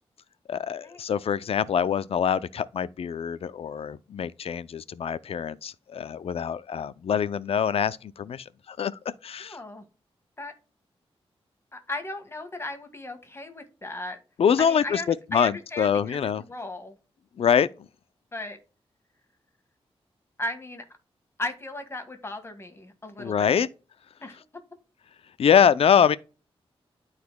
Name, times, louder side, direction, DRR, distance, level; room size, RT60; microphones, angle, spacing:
voice 1, 0.5-8.9 9.2-9.6 14.4-16.4 17.4-17.7 23.2-23.7 25.4-26.2, left 8 dB, 70° left, 0.5 m, -24 dB
voice 2, 9.4-9.8 10.4-10.5 11.7-14.2 14.6-16.2 16.5-17.0 18.3-18.6 20.4-20.8 21.4-23.7 24.2-24.4, left 2 dB, 25° left, 1.6 m, -36 dB
12.5 x 4.1 x 2.2 m
wide cardioid pair, 110°, 11 cm